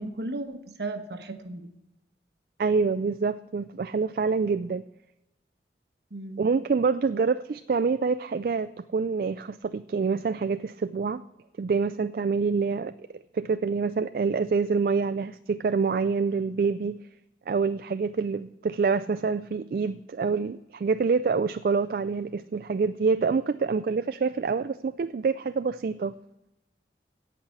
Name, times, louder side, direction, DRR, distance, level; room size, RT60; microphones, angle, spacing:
voice 1, 0.0-1.7 6.1-6.5, right 2 dB, 70° right, 7 dB, 1.2 m, -35 dB
voice 2, 2.6-4.8 6.4-11.2 11.6-12.9 13.3-17.0 17.5-26.1, right 5 dB, 55° right, 12 dB, 0.3 m, -26 dB
16.5 x 5.8 x 7.2 m, 0.92 s
head